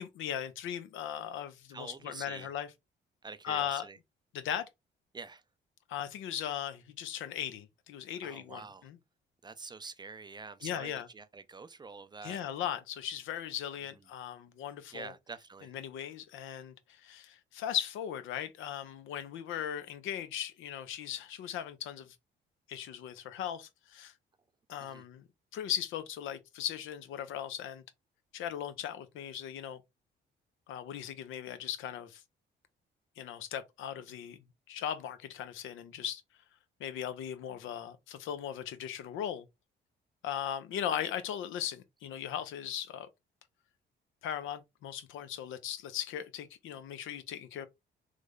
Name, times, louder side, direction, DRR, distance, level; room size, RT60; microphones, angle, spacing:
voice 1, 0.0-2.7 3.4-3.9 4.3-4.7 5.9-9.0 10.6-11.1 12.2-15.1 15.6-22.2 22.7-24.1 24.7-25.3 25.5-27.8 28.3-29.8 30.7-32.2 33.2-34.4 34.7-36.2 36.8-39.5 40.2-43.1 44.2-47.7, left 10 dB, 85° left, 0.5 m, -38 dB
voice 2, 1.7-2.5 3.2-4.0 5.1-5.4 8.2-8.9 9.4-12.4 14.9-15.7 24.8-25.0, right 4 dB, 20° right, 0.4 m, -46 dB
3.2 x 2.1 x 3.6 m
cardioid pair, 90°, 20 cm